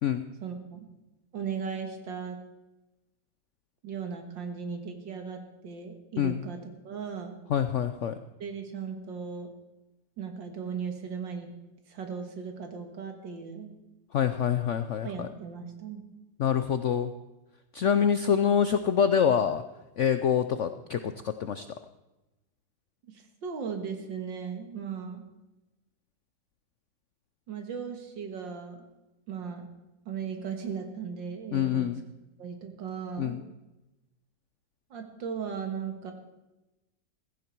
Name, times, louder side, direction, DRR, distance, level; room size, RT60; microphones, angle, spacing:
voice 1, 0.4-0.9 1.3-2.4 3.8-6.6 6.8-7.4 8.4-9.5 10.2-11.5 11.9-13.7 15.0-16.0 23.1-25.2 27.5-28.9 29.3-29.7 30.1-31.9 32.4-33.4 34.9-36.1, right 6 dB, 85° right, 5 dB, 2.3 m, -37 dB
voice 2, 7.5-8.2 14.1-15.3 16.4-17.1 17.7-19.6 20.0-21.7 31.5-32.0 33.2-33.4, left 8 dB, 75° left, 10 dB, 0.6 m, -26 dB
15.5 x 14.5 x 4.6 m, 1.0 s
omnidirectional pair, 2.0 m